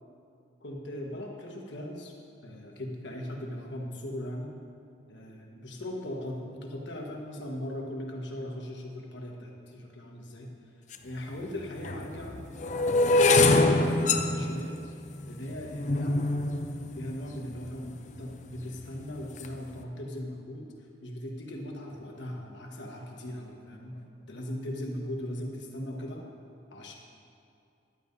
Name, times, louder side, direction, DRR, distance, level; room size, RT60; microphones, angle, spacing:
voice 1, 0.6-2.1 2.4-4.5 5.1-10.5 11.0-12.4 12.7-14.8 15.3-16.3 16.9-26.3 26.7-26.9, left 1 dB, 70° left, 0 dB, 1.3 m, -39 dB
sound 1, 10.9-11.0 11.8-17.9 18.6-19.0 19.2-19.6, left 2 dB, 40° left, 0.5 m, -25 dB
14.5 x 11.0 x 2.7 m, 2.5 s
head